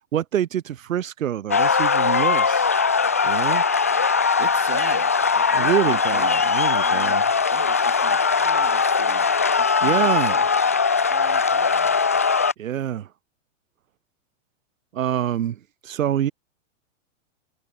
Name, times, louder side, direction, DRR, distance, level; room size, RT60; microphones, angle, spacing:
voice 1, 0.1-2.7 3.2-3.6 5.5-7.2 9.8-10.4 12.6-13.1 14.9-16.3, right 10 dB, 85° right, 2.4 m, -26 dB
sound 1, 1.5-12.5, left 5 dB, 15° left, 0.3 m, -20 dB
voice 2, 4.4-6.5 6.8-9.3 9.6-10.5 11.1-12.0, right 31 dB, 25° right, 3.2 m, -41 dB
supercardioid pair, 175°, 39 cm